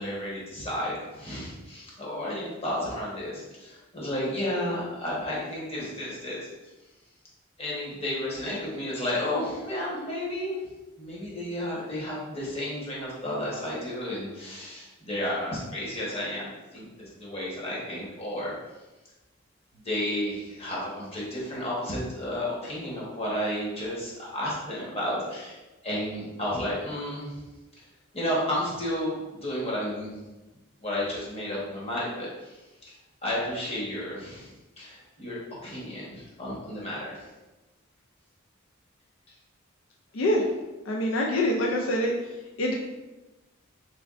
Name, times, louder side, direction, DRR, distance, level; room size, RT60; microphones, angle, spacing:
voice 1, 0.0-6.4 7.6-10.5 11.0-16.9 17.2-18.5 19.7-25.6 25.8-27.4 27.8-27.9 28.1-30.2 30.8-32.6 33.2-37.3, left 1 dB, 30° left, -6 dB, 1.0 m, -32 dB
voice 2, 40.1-40.4 40.9-42.1 42.6-42.8, left 1 dB, 75° left, -1 dB, 0.4 m, -25 dB
3.4 x 3.3 x 2.4 m, 1.1 s
head